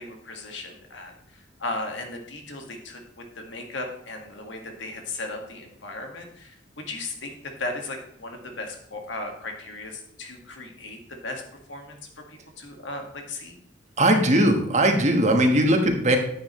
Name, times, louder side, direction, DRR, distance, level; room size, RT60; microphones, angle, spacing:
voice 1, 0.0-3.0 3.4-11.4 11.7-12.0 12.3-13.6, left 2 dB, 80° left, 3 dB, 1.8 m, -36 dB
voice 2, 14.0-16.2, right 1 dB, 40° right, 4 dB, 1.4 m, -19 dB
10.5 x 8.6 x 3.1 m, 0.72 s
head